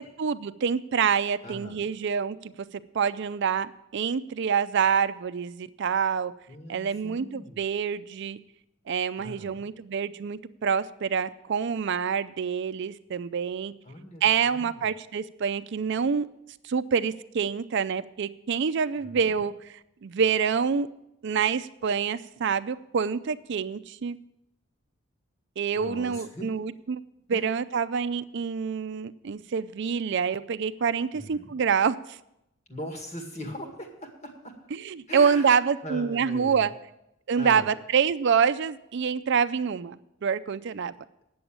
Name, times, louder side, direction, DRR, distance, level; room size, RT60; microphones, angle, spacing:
voice 1, 0.0-2.5 2.9-6.3 6.7-8.4 8.9-13.7 14.2-16.3 16.6-19.7 20.0-20.9 21.2-24.2 25.6-27.0 27.3-32.2 34.7-36.7 37.3-40.9, right 6 dB, 60° right, 12 dB, 0.4 m, -26 dB
voice 2, 1.4-1.8 6.5-7.6 9.2-9.6 13.8-14.8 19.0-19.4 25.7-26.5 27.3-27.4 31.1-31.5 32.7-34.5 35.1-36.7 37.4-37.7, equal, 35° left, 3 dB, 2.1 m, -40 dB
9.6 x 7.0 x 8.6 m, 0.84 s
head